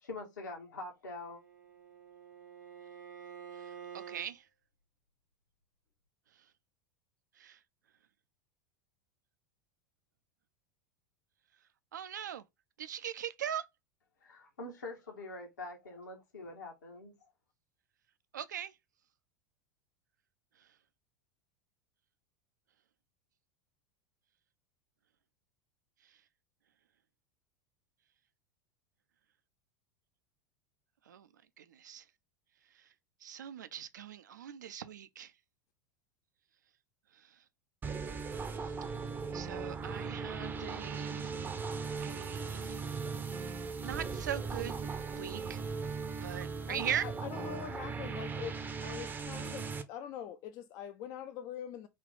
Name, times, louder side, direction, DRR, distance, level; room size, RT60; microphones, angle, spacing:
voice 1, 0.0-1.4 14.2-17.1, left 2 dB, 70° left, 1.3 m, -44 dB
Bowed string instrument, 1.1-4.3, right 7 dB, 90° right, 1.3 m, -49 dB
voice 2, 3.5-4.5 7.4-7.6 11.9-12.4 12.8-13.7 18.3-18.7 20.6-20.7 26.1-26.2 31.1-31.3 31.6-32.1 32.7-32.9 33.2-35.3 37.1-37.4 38.6-38.8 39.3-41.4 42.0-42.9 43.8-44.8 45.1-45.6 45.9-47.1 49.5-49.7, right 9 dB, 70° right, 0.4 m, -40 dB
sound 1, 37.8-49.8, right 5 dB, 20° right, 0.5 m, -38 dB
voice 3, 46.7-51.9, left 9 dB, 40° left, 0.4 m, -44 dB
3.8 x 2.3 x 3.3 m
figure-of-eight pair, 85°, 10 cm